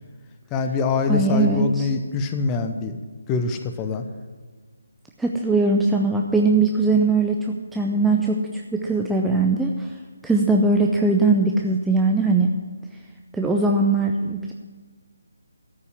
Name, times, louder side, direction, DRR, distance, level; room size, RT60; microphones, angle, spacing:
voice 1, 0.5-3.0 3.3-4.1, left 4 dB, 15° left, 7 dB, 0.8 m, -24 dB
voice 2, 1.1-1.9 5.2-9.9 10.2-12.5 13.3-14.5, right 3 dB, 5° right, 0 dB, 0.5 m, -20 dB
13.5 x 5.6 x 9.4 m, 1.4 s
figure-of-eight pair, 150°, 0 cm